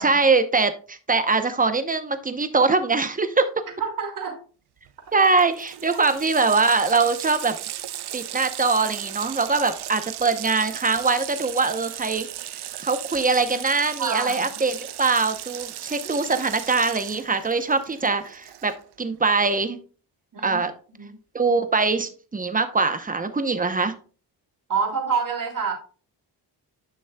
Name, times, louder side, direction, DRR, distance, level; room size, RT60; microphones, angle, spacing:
voice 1, 0.0-3.5 5.1-7.6 8.1-12.3 12.8-19.8 20.4-20.7 21.3-23.9, right 4 dB, 20° right, 9 dB, 0.8 m, -22 dB
voice 2, 3.8-4.4 14.0-14.5 20.3-20.6 20.9-21.1 24.7-25.7, right 5 dB, 45° right, 0 dB, 2.7 m, -27 dB
Water tap faucet, 4.9-5.0 5.2-18.9, right 12 dB, 65° right, 0.6 m, -36 dB
10.0 x 6.1 x 2.3 m, 0.38 s
cardioid pair, 95°, 43 cm